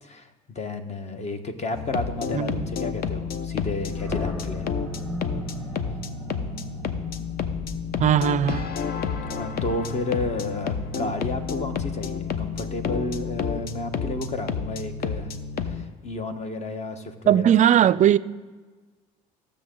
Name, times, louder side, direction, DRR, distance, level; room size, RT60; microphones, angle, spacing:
voice 1, 0.0-4.7 9.3-15.3 15.6-17.5, left 2 dB, 35° left, 1.4 m, -32 dB
sound 1, 1.7-15.8, left 6 dB, 50° left, 0.9 m, -30 dB
voice 2, 2.3-2.7 8.0-8.7 11.0-11.1 17.3-18.2, right 10 dB, 40° right, 0.4 m, -19 dB
Animal, 3.9-11.0, equal, 10° left, 2.0 m, -39 dB
15.5 x 6.7 x 3.9 m
hypercardioid pair, 65°, 20 cm